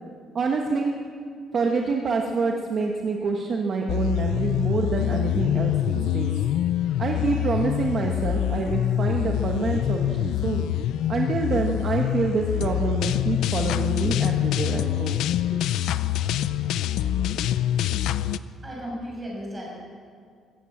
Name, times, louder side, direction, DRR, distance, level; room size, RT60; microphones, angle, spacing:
voice 1, 0.3-0.9 1.5-6.3 7.0-10.7 11.1-15.2 15.5-15.7, right 4 dB, 35° right, 1 dB, 1.4 m, -26 dB
sound 1, 3.9-18.4, left 12 dB, 90° left, 0.6 m, -25 dB
voice 2, 18.6-19.7, equal, 10° right, -3 dB, 7.6 m, -34 dB
25.0 x 15.0 x 7.3 m, 2.1 s
cardioid pair, 175°, 0 cm